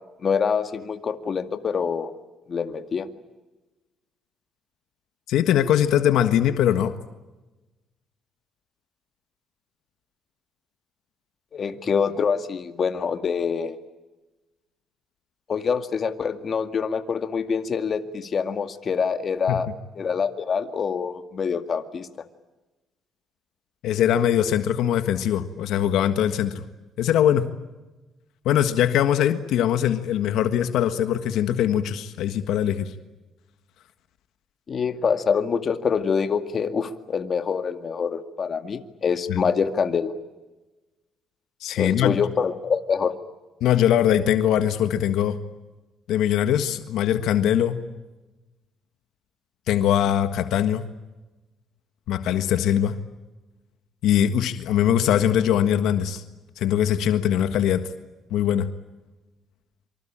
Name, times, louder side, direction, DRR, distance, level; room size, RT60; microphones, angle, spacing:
voice 1, 0.2-2.1 2.5-3.1 11.5-13.8 15.5-19.7 20.0-22.1 34.7-40.1 41.8-43.1, left 6 dB, 45° left, 8 dB, 2.1 m, -25 dB
voice 2, 5.3-7.0 19.5-19.6 23.8-26.5 27.0-27.5 28.4-32.9 39.3-39.4 41.6-42.2 43.6-45.4 46.1-47.8 49.7-50.8 52.1-53.0 54.0-56.2 56.6-57.9 58.3-58.7, left 10 dB, 85° left, 9 dB, 1.5 m, -21 dB
26.5 x 25.0 x 8.8 m, 1.1 s
cardioid pair, 105°, 0 cm